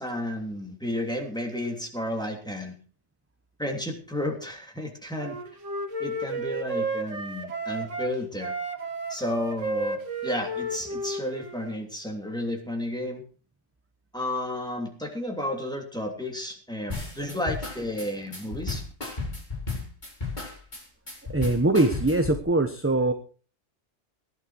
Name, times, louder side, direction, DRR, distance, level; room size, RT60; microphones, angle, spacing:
voice 1, 0.0-2.8 3.6-5.4 6.0-8.5 9.1-13.2 14.1-18.8, left 1 dB, 5° left, 1 dB, 2.9 m, -32 dB
Wind instrument woodwind instrument, 5.2-8.1 8.4-11.8, right 2 dB, 85° right, 1.9 m, -32 dB
sound 1, 16.9-22.4, left 3 dB, 40° left, 4.4 m, -34 dB
voice 2, 21.3-23.1, right 2 dB, 10° right, 6 dB, 0.9 m, -22 dB
16.5 x 11.0 x 4.6 m, 0.39 s
omnidirectional pair, 1.2 m